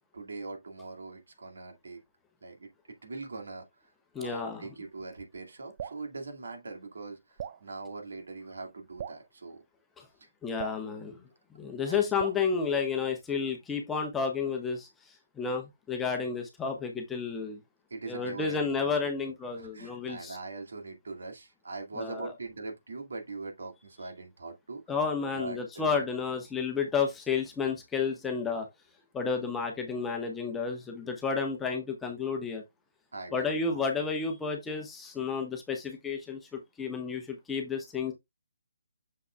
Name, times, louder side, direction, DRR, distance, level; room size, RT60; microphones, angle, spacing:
voice 1, 0.1-2.0 2.4-3.7 4.2-9.6 10.2-10.3 11.9-12.2 17.9-18.9 19.5-24.8 25.3-26.1 33.1-34.1, right 3 dB, 60° right, 2.2 m, -42 dB
voice 2, 4.1-4.7 10.0-10.1 10.4-11.2 11.6-14.9 15.4-17.6 18.1-20.4 22.0-22.3 24.9-28.7 29.1-32.6 33.3-38.1, left 5 dB, 10° left, 1.2 m, -31 dB
Drip, 5.8-6.0 7.4-7.6 9.0-9.2 10.6-10.8 12.2-12.5, right 9 dB, 35° right, 0.4 m, -39 dB
7.0 x 6.0 x 2.3 m
figure-of-eight pair, 140°, 0 cm